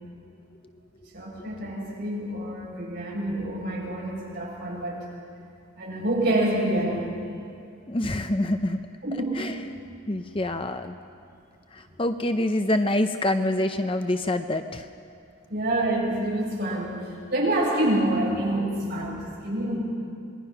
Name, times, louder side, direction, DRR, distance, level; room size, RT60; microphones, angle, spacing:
voice 1, 1.1-5.0 5.8-7.1 9.0-9.4 15.5-17.0 17.3-19.8, right 1 dB, 50° right, -4 dB, 7.5 m, -27 dB
voice 2, 7.9-8.8 9.3-9.6 10.1-11.0 11.7-14.8, left 1 dB, 25° left, 7 dB, 0.6 m, -26 dB
26.5 x 20.5 x 5.8 m, 2.5 s
head